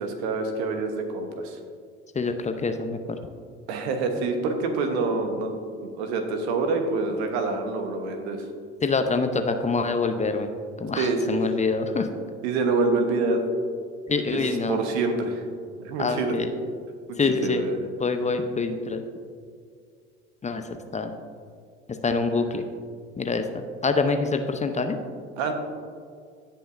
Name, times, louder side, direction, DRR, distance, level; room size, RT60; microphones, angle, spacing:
voice 1, 0.0-1.6 3.7-5.5 5.8-8.5 11.0-11.4 12.4-13.4 14.3-14.4 14.7-15.4 15.8-16.3 17.1-17.8 25.4-25.5, right 3 dB, 70° right, 5 dB, 1.2 m, -26 dB
voice 2, 2.1-3.0 8.8-10.5 10.8-12.1 14.1-14.8 16.0-16.5 17.2-17.6 18.0-19.0 20.4-20.6 20.9-21.1 21.9-22.6 23.2-23.5 23.8-25.0, left 4 dB, 20° left, 7 dB, 0.7 m, -25 dB
16.5 x 5.7 x 2.6 m, 2.1 s
hypercardioid pair, 60°, 33 cm